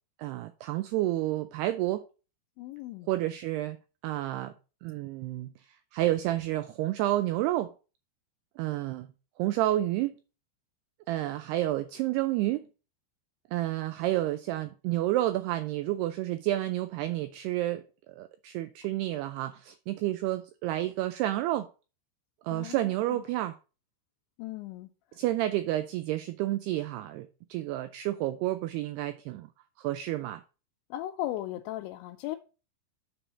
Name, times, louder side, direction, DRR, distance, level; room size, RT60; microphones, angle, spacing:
voice 1, 0.2-2.1 3.1-3.8 4.0-4.5 4.8-7.7 8.6-9.1 9.4-10.2 11.1-12.7 13.5-21.7 22.4-23.6 25.2-29.5 29.8-30.4, right 15 dB, 85° right, 2.3 m, -30 dB
voice 2, 2.6-3.1 22.5-23.2 24.4-24.9 30.9-32.4, left 14 dB, 90° left, 3.0 m, -37 dB
7.0 x 4.4 x 6.8 m
omnidirectional pair, 5.2 m